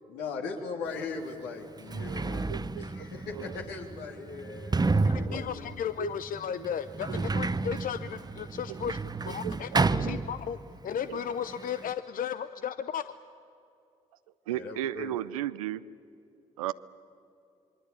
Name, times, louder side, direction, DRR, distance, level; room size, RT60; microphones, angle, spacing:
voice 1, 0.1-5.9 14.5-15.2, left 4 dB, 75° left, 2 dB, 3.2 m, -39 dB
Sliding door, 1.0-1.1 1.7-10.8 11.1-11.9, right 3 dB, 25° right, 0.9 m, -31 dB
voice 2, 2.5-2.8 3.3-3.5 5.3-5.5 6.0-6.2 6.6-6.7 7.1-7.2 8.7-8.9 9.3-9.8 11.1-11.2 14.5-15.8 16.6-16.7, right 13 dB, 90° right, 16 dB, 0.6 m, -35 dB
voice 3, 5.0-9.0 9.2-13.0, left 8 dB, 50° left, 12 dB, 0.7 m, -35 dB
26.5 x 22.5 x 8.6 m, 2.7 s
hypercardioid pair, 45°, 18 cm